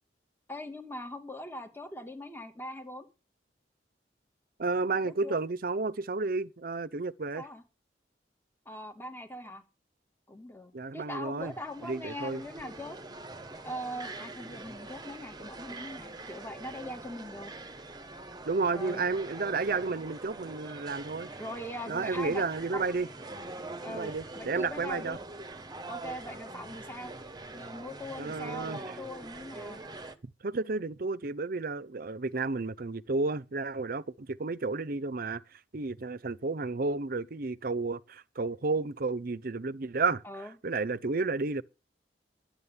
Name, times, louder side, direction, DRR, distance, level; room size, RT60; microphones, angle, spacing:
voice 1, 0.5-3.1 5.0-5.4 7.3-7.6 8.7-9.6 10.3-13.0 13.6-17.5 18.7-19.0 21.4-22.4 22.7-22.8 23.8-25.2 25.9-27.1 27.5-29.8 40.2-40.5, left 1 dB, 10° left, 2.5 m, -41 dB
voice 2, 4.6-7.5 10.7-11.5 11.8-12.4 18.4-21.3 21.9-23.1 23.9-25.2 28.2-29.0 30.4-40.2 40.6-41.6, right 3 dB, 50° right, 0.6 m, -32 dB
sound 1, 11.4-30.2, right 2 dB, 25° right, 1.1 m, -44 dB
11.5 x 8.7 x 7.2 m
head